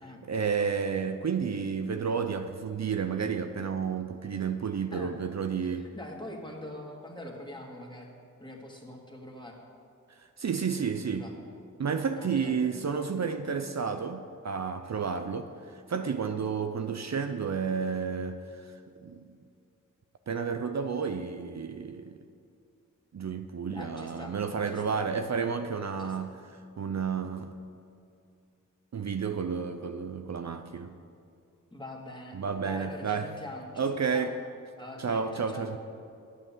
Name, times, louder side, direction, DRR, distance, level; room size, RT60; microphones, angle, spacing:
voice 1, 0.2-5.9 10.2-11.3 11.8-18.7 19.0-19.2 20.3-22.2 23.1-26.4 26.8-27.6 28.9-31.0 32.3-33.3 33.8-34.4 35.0-35.8, right 6 dB, 55° right, 7 dB, 0.6 m, -31 dB
voice 2, 5.6-8.1 8.4-9.6 11.1-11.3 12.2-12.6 23.7-24.4 24.7-25.0 26.0-26.2 31.7-34.4 34.8-35.7, left 1 dB, 15° left, 0 dB, 2.1 m, -43 dB
9.0 x 8.3 x 7.3 m, 2.4 s
cardioid pair, 40°, 33 cm